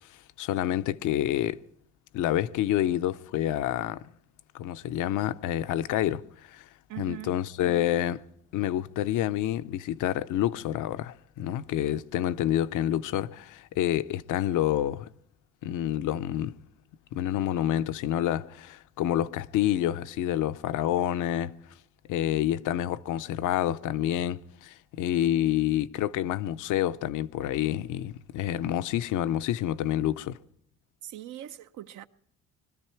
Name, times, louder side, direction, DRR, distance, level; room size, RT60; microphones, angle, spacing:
voice 1, 0.4-1.6 2.1-4.0 4.5-6.6 7.0-8.2 8.5-15.1 15.6-16.6 17.1-21.5 22.1-30.4, left 12 dB, 80° left, 0.6 m, -28 dB
voice 2, 6.9-7.4 31.0-32.1, right 13 dB, 80° right, 0.7 m, -41 dB
21.5 x 13.0 x 4.5 m
cardioid pair, 90°, 30 cm